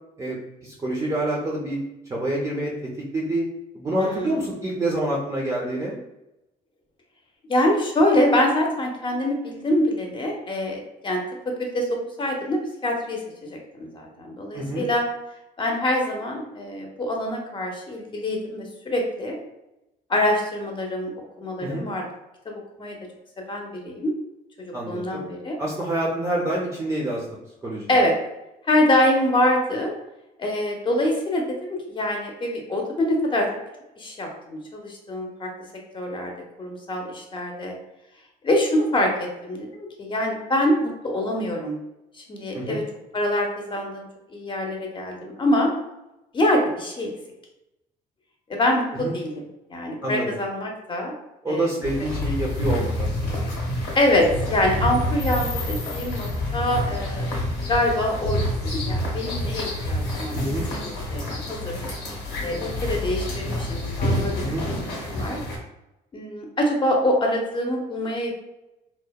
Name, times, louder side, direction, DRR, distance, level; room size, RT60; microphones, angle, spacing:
voice 1, 0.6-1.8 2.1-2.7 3.1-3.4 3.7-6.0 14.5-14.9 21.6-21.9 24.7-25.2 25.6-27.2 27.6-27.9 42.5-42.8 49.0-49.1 50.0-50.3 51.4-53.5 60.4-60.7 64.4-64.6, right 1 dB, 20° right, -3 dB, 0.4 m, -27 dB
voice 2, 4.0-4.4 7.5-15.0 15.6-19.4 20.1-21.1 21.4-22.1 22.5-23.0 23.5-24.1 24.8-25.6 27.9-28.2 28.7-29.9 30.4-31.4 31.7-33.5 34.0-35.5 35.9-36.3 36.6-37.7 38.4-41.8 42.2-42.8 43.1-44.1 44.3-45.7 46.3-47.1 48.5-49.3 49.7-51.1 51.5-51.7 53.9-57.3 57.7-58.4 58.9-61.7 62.4-64.4 65.0-65.4 66.1-68.3, left 1 dB, 30° left, 1 dB, 0.6 m, -25 dB
sound 1, 51.8-65.6, left 1 dB, 85° left, 0.9 m, -28 dB
2.7 x 2.0 x 2.2 m, 0.91 s
cardioid pair, 110°, 17 cm